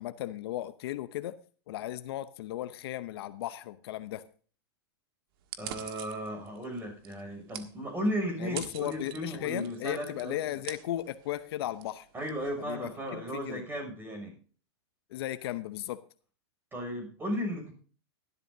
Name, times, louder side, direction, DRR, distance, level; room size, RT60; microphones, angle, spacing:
voice 1, 0.0-1.4 1.7-4.3 8.4-12.1 12.6-13.6 15.1-16.0, left 13 dB, 65° left, 13 dB, 0.7 m, -36 dB
sound 1, 5.4-13.2, right 10 dB, 60° right, 1.6 m, -47 dB
voice 2, 5.6-10.4 12.1-14.3 16.7-17.7, equal, 15° right, 4 dB, 6.2 m, -35 dB
17.5 x 12.0 x 2.7 m, 0.40 s
hypercardioid pair, 130°, 14 cm